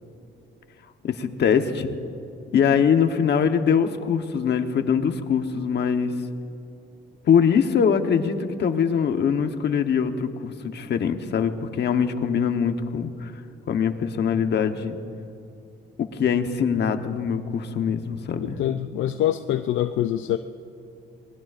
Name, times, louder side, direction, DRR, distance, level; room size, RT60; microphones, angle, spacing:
voice 1, 1.0-1.9 2.5-6.1 7.2-13.3 13.7-15.0 16.0-18.6, left 7 dB, 60° left, 7 dB, 1.1 m, -23 dB
voice 2, 18.4-20.4, left 12 dB, 75° left, 8 dB, 0.5 m, -25 dB
26.5 x 19.5 x 2.6 m, 2.7 s
cardioid pair, 90°, 20 cm